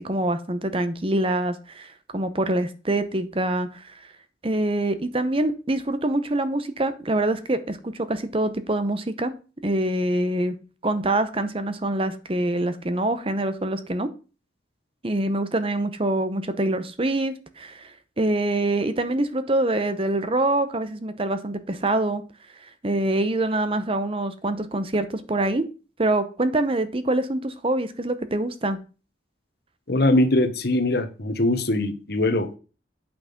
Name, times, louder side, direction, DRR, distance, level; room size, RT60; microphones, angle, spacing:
voice 1, 0.0-3.8 4.4-9.3 9.6-10.5 10.8-14.1 15.0-17.9 18.2-22.2 22.8-25.7 26.0-28.8, right 1 dB, 30° right, 0.8 m, -25 dB
voice 2, 29.9-32.6, left 1 dB, 60° left, 1.2 m, -22 dB
8.8 x 5.9 x 5.2 m
head